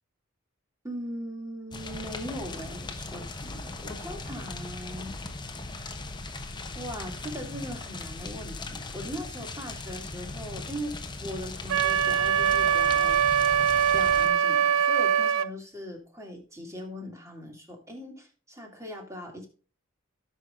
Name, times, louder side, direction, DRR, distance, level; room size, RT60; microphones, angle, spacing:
voice 1, 0.8-5.2 6.7-13.2 13.9-19.5, equal, 15° right, 2 dB, 2.3 m, -39 dB
sound 1, 1.7-14.3, left 3 dB, 20° left, 1.0 m, -38 dB
Wind instrument woodwind instrument, 11.7-15.5, right 8 dB, 85° right, 0.4 m, -23 dB
17.0 x 5.7 x 2.5 m, 0.37 s
head